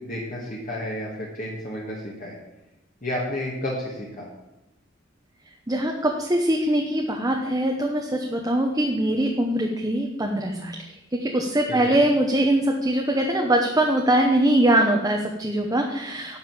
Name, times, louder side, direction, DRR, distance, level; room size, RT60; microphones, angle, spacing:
voice 1, 0.0-2.4 3.0-4.3 11.7-12.0, left 1 dB, 45° left, -4 dB, 2.0 m, -31 dB
voice 2, 5.7-10.8 11.1-16.4, right 1 dB, 20° right, 1 dB, 0.9 m, -22 dB
12.0 x 5.4 x 7.6 m, 0.95 s
head